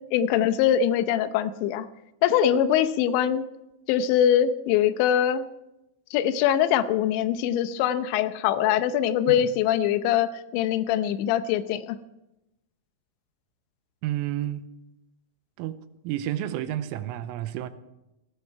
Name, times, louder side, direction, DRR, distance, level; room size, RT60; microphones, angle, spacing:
voice 1, 0.1-1.9 2.2-3.4 3.9-5.4 6.1-12.0, left 10 dB, 75° left, 2.8 m, -23 dB
voice 2, 14.0-14.7 15.6-15.8 16.1-17.7, right 12 dB, 85° right, 3.4 m, -30 dB
19.0 x 14.5 x 4.8 m
omnidirectional pair, 5.8 m